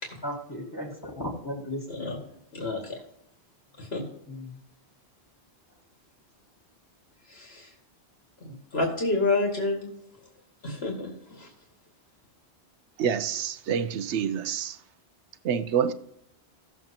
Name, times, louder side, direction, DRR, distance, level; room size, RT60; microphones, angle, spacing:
voice 1, 0.2-2.1 4.3-4.6, left 1 dB, 15° left, 1.8 m, -36 dB
voice 2, 2.5-3.0 3.8-4.0 7.3-7.7 8.4-9.9 10.6-11.1 11.4-11.5, left 2 dB, 70° left, 2.2 m, -28 dB
voice 3, 13.0-14.8 15.4-15.9, right 7 dB, 90° right, 1.0 m, -27 dB
16.5 x 7.2 x 2.9 m
omnidirectional pair, 1.1 m